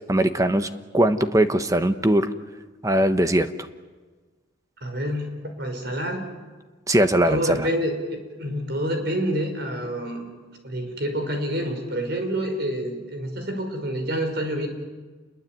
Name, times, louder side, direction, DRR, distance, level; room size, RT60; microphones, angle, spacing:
voice 1, 0.1-0.7 0.9-2.3 2.8-3.5 6.9-7.7, right 1 dB, 15° right, 9 dB, 1.2 m, -20 dB
voice 2, 4.8-6.2 7.3-10.3 10.6-14.7, equal, 55° right, 5 dB, 5.4 m, -28 dB
29.0 x 22.0 x 9.2 m, 1.4 s
head